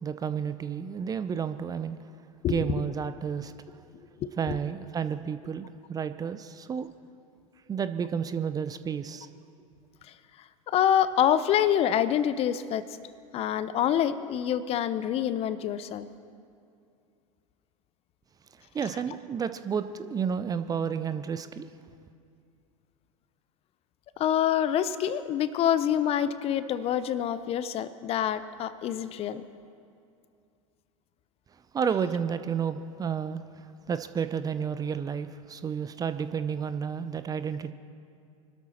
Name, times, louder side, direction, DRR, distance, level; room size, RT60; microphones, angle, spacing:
voice 1, 0.0-2.0 2.4-3.5 4.4-6.9 7.7-9.3 18.7-21.7 31.7-33.4 33.9-37.7, right 7 dB, 20° right, 12 dB, 0.6 m, -31 dB
voice 2, 4.2-4.6 10.1-10.2 10.7-12.8 13.3-16.1 24.2-29.4, left 10 dB, 35° left, 14 dB, 0.7 m, -26 dB
24.5 x 13.0 x 4.3 m, 2.4 s
figure-of-eight pair, 85°, 18 cm